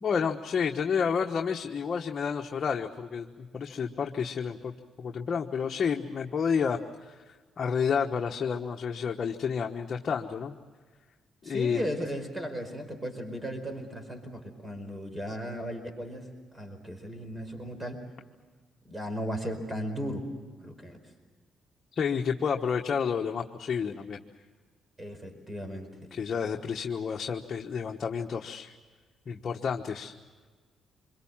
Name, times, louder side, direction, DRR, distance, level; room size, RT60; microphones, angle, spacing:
voice 1, 0.0-4.7 5.0-7.1 7.6-10.6 11.4-11.9 22.0-24.2 26.1-28.7 29.3-30.1, left 6 dB, 45° left, 2 dB, 1.2 m, -30 dB
voice 2, 11.4-16.3 16.5-18.0 18.9-20.3 20.6-21.0 25.0-26.2, equal, 15° right, 6 dB, 4.9 m, -36 dB
26.0 x 23.0 x 7.3 m, 1.4 s
cardioid pair, 90°, 0 cm